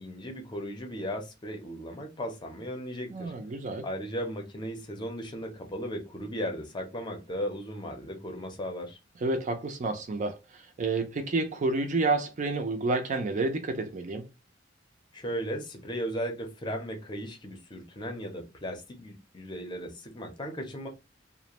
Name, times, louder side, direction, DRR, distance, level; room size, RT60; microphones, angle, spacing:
voice 1, 0.0-3.3 3.8-9.0 15.1-20.9, equal, 25° left, 0.6 m, -36 dB
voice 2, 3.1-3.9 9.2-14.3, right 3 dB, 40° right, 0.4 m, -29 dB
2.4 x 2.0 x 2.9 m
head